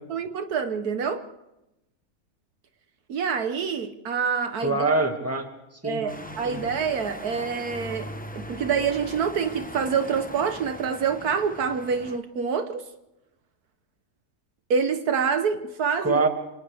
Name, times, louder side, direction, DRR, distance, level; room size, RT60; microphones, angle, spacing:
voice 1, 0.1-1.2 3.1-4.8 5.8-12.8 14.7-16.2, right 6 dB, 75° right, 8 dB, 1.5 m, -26 dB
voice 2, 4.6-5.5 5.8-6.6 16.0-16.3, right 3 dB, 10° right, 3 dB, 2.0 m, -25 dB
sound 1, 6.1-12.2, equal, 5° left, 0.8 m, -40 dB
27.0 x 27.0 x 3.5 m, 0.92 s
omnidirectional pair, 1.7 m